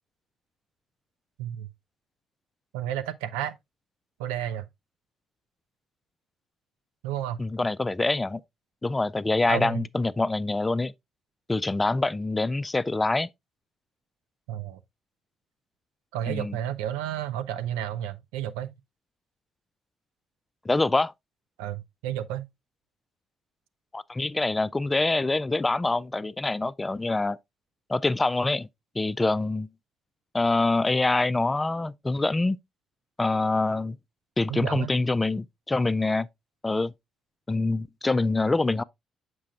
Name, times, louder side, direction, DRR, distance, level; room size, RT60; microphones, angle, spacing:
voice 1, 2.7-3.6 4.2-4.7 7.0-7.4 9.5-9.9 14.5-14.8 16.1-18.7 21.6-22.5 34.5-34.9, right 11 dB, 80° right, 0.4 m, -31 dB
voice 2, 7.4-8.4 8.8-10.9 11.5-13.3 16.3-16.6 20.7-21.1 23.9-27.4 27.9-28.7 29.0-29.7 30.3-32.6 33.2-34.0 34.4-36.3 36.6-36.9 37.5-38.8, left 2 dB, 20° left, 0.4 m, -25 dB
7.4 x 6.1 x 2.4 m
hypercardioid pair, 50°, 0 cm